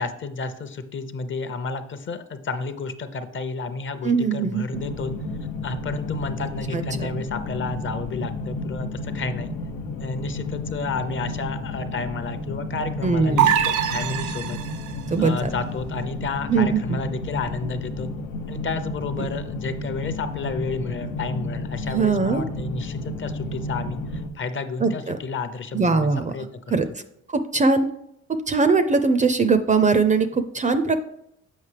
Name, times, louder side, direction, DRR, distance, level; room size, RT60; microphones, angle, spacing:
voice 1, 0.0-5.1 5.6-9.5 10.0-14.6 15.2-18.1 18.5-26.5, left 4 dB, 40° left, 10 dB, 0.6 m, -31 dB
voice 2, 4.0-4.6 6.7-6.8 13.0-13.5 15.1-15.5 16.5-17.0 19.2-19.3 21.9-22.4 24.8-25.2 25.7-26.3 26.7-26.9 27.3-27.9 28.3-31.0, right 4 dB, 25° right, 10 dB, 0.4 m, -21 dB
sound 1, 4.7-24.3, left 2 dB, 90° left, 0.8 m, -32 dB
sound 2, 13.4-15.0, right 9 dB, 80° right, 0.5 m, -23 dB
7.3 x 5.2 x 3.3 m, 0.78 s
cardioid pair, 90°, 30 cm